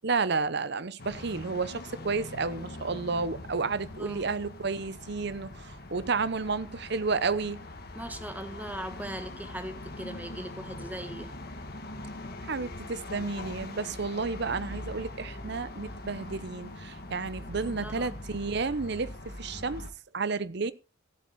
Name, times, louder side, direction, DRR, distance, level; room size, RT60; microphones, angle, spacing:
voice 1, 0.0-7.6 12.4-19.9 20.1-20.7, right 4 dB, 55° right, 0.7 m, -31 dB
sound 1, 1.0-19.9, left 2 dB, 50° left, 1.7 m, -42 dB
voice 2, 8.0-11.3 17.8-18.1, right 1 dB, 10° right, 1.3 m, -39 dB
15.5 x 8.4 x 4.2 m
head